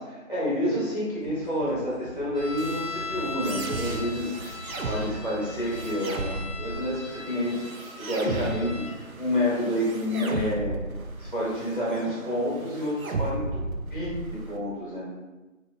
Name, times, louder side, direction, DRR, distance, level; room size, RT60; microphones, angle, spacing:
voice 1, 0.0-4.5 4.8-7.6 8.0-10.8 11.2-13.6 13.9-15.1, left 1 dB, 40° left, -9 dB, 1.0 m, -29 dB
sound 1, 1.2-6.8, equal, 40° right, 0.8 m, -43 dB
sound 2, 2.3-8.9, left 4 dB, ahead, 0.6 m, -39 dB
sound 3, 2.6-14.6, right 3 dB, 85° right, 0.5 m, -35 dB
3.2 x 2.8 x 2.6 m, 1.1 s
figure-of-eight pair, 175°, 41 cm